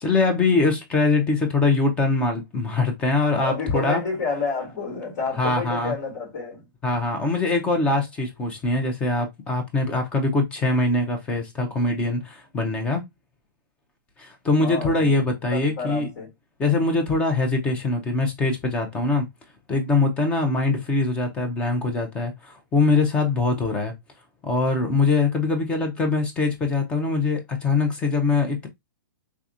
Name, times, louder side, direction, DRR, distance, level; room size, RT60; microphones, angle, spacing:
voice 1, 0.0-4.0 5.4-5.9 6.8-13.0 14.2-16.1 16.6-19.3 19.7-23.9 24.4-28.7, left 3 dB, 10° left, 0.4 m, -23 dB
voice 2, 3.4-6.7 14.6-15.1 15.5-16.3, left 4 dB, 60° left, 2.3 m, -29 dB
3.4 x 2.6 x 2.4 m
hypercardioid pair, 165°, 12 cm